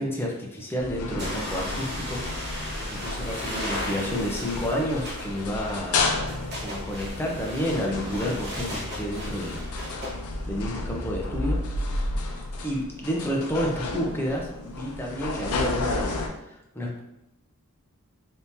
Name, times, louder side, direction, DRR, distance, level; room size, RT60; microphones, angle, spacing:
voice 1, 0.0-2.2 2.9-6.2 6.6-9.6 10.5-11.6 12.6-16.2 16.5-17.0, equal, 10° left, -2 dB, 0.6 m, -30 dB
sound 1, 0.8-16.3, left 2 dB, 85° left, 0.5 m, -32 dB
sound 2, 1.2-10.2, left 1 dB, 50° right, 1.0 m, -36 dB
3.5 x 2.9 x 2.7 m, 0.86 s
head